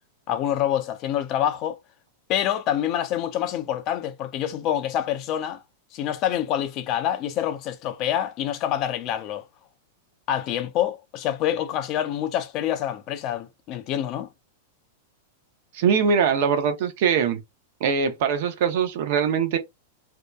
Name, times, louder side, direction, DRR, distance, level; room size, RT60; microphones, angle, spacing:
voice 1, 0.3-1.8 2.3-5.6 5.9-9.4 10.3-14.3, left 11 dB, 35° left, 0.4 m, -26 dB
voice 2, 15.7-17.4 17.8-19.6, right 6 dB, 55° right, 0.5 m, -22 dB
2.7 x 2.1 x 2.2 m
supercardioid pair, 150°, 0 cm